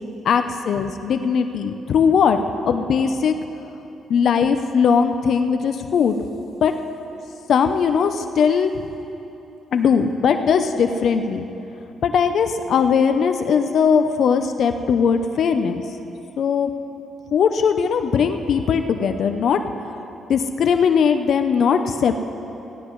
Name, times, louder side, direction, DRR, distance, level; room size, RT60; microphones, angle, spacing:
voice 1, 0.2-2.4 2.7-3.4 4.1-6.2 6.6-6.7 7.5-8.7 9.7-11.5 12.0-15.8 16.4-16.7 17.3-19.6 20.3-22.2, left 6 dB, 65° left, 8 dB, 0.6 m, -19 dB
19.5 x 16.5 x 3.1 m, 3.0 s
cardioid pair, 100°, 0 cm